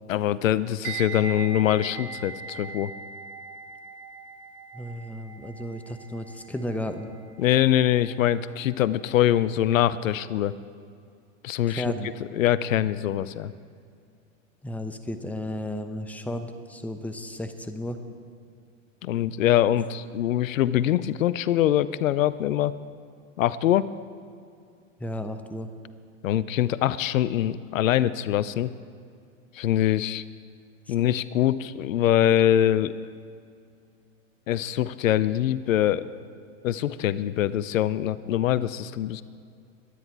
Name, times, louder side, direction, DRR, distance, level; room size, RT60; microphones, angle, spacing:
voice 1, 0.1-2.9 7.4-10.5 11.4-13.5 19.0-22.8 23.4-23.9 26.2-28.7 29.5-30.2 30.9-32.9 34.5-36.1 36.6-39.2, left 12 dB, 80° left, 17 dB, 0.6 m, -23 dB
sound 1, 0.8-9.8 10.1-10.4, right 5 dB, 55° right, 1.2 m, -41 dB
voice 2, 4.7-7.1 11.7-12.1 14.6-18.0 25.0-25.7 30.9-31.0, left 1 dB, 5° left, 8 dB, 0.9 m, -33 dB
23.0 x 10.0 x 4.6 m, 2.3 s
hypercardioid pair, 105°, 39 cm